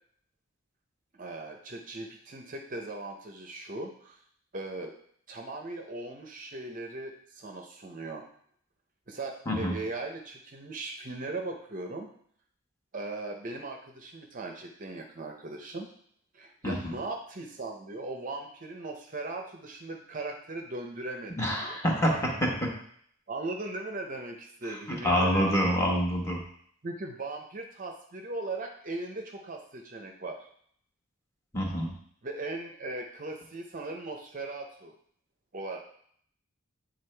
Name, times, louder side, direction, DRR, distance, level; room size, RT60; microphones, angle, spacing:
voice 1, 1.2-4.2 4.5-4.9 5.3-8.2 9.1-12.1 12.9-15.9 16.3-21.8 23.3-25.5 26.8-30.4 32.2-34.9 35.5-35.8, right 2 dB, 40° right, 3 dB, 0.6 m, -38 dB
voice 2, 9.5-9.8 16.6-17.0 21.4-22.7 25.0-26.4 31.5-31.9, equal, 15° left, -2 dB, 1.2 m, -27 dB
8.7 x 3.9 x 3.3 m, 0.63 s
head